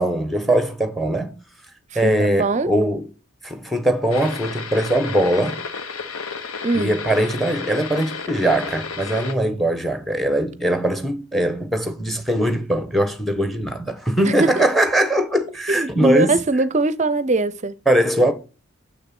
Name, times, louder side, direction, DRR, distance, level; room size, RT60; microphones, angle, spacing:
voice 1, 0.0-1.4 1.9-3.1 3.4-5.6 6.7-16.4 17.9-18.3, right 1 dB, ahead, 1.1 m, -21 dB
voice 2, 1.9-2.7 6.6-6.9 14.3-14.6 15.7-17.7, right 3 dB, 35° right, 0.6 m, -21 dB
sound 1, 4.1-9.3, left 5 dB, 85° left, 1.1 m, -32 dB
7.0 x 6.5 x 6.0 m
head